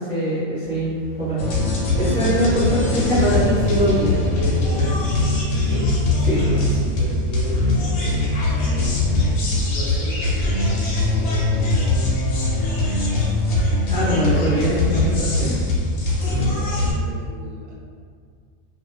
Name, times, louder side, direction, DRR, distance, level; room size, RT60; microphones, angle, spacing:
voice 1, 0.0-1.5 2.0-5.0 6.3-6.6 13.9-15.6, right 1 dB, 10° right, -14 dB, 0.7 m, -22 dB
sound 1, 0.6-6.1, left 3 dB, 55° left, 0.5 m, -35 dB
sound 2, 1.4-16.9, left 2 dB, 75° left, 1.0 m, -21 dB
voice 2, 6.3-8.3 8.6-11.5 11.7-12.0 16.2-17.7, right 2 dB, 70° right, -4 dB, 0.9 m, -37 dB
2.4 x 2.3 x 2.2 m, 2.1 s
omnidirectional pair, 1.5 m